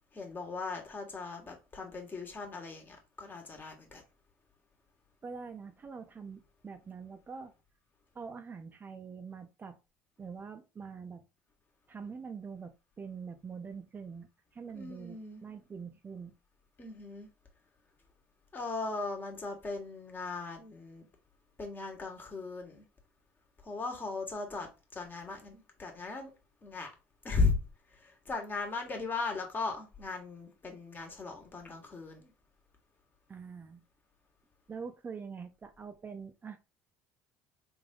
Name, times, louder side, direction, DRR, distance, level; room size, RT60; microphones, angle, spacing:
voice 1, 0.1-4.0 14.7-15.4 16.8-17.3 18.5-21.0 21.6-22.8 23.6-26.3 26.6-26.9 27.2-27.6 27.9-32.3, left 4 dB, 30° left, 1.5 m, -37 dB
voice 2, 5.2-7.5 8.1-9.8 10.2-11.2 11.9-16.3 33.3-33.8 34.7-36.6, right 5 dB, 30° right, 0.5 m, -44 dB
3.4 x 2.6 x 3.7 m
supercardioid pair, 80°, 7 cm